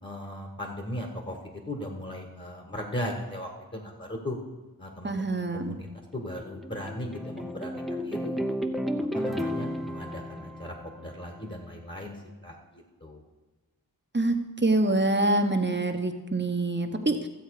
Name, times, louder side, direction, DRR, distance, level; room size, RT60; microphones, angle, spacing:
voice 1, 0.0-4.4 4.8-5.1 5.5-5.9 6.1-8.4 9.1-12.1 12.4-12.5 13.0-13.2, left 1 dB, 30° left, 1 dB, 1.6 m, -37 dB
voice 2, 5.0-5.8 14.1-14.4 14.6-17.3, right 2 dB, 30° right, 5 dB, 1.0 m, -25 dB
sound 1, 5.9-11.5, equal, ahead, 0.7 m, -33 dB
14.0 x 8.0 x 4.8 m, 1.3 s
wide cardioid pair, 75°, 37 cm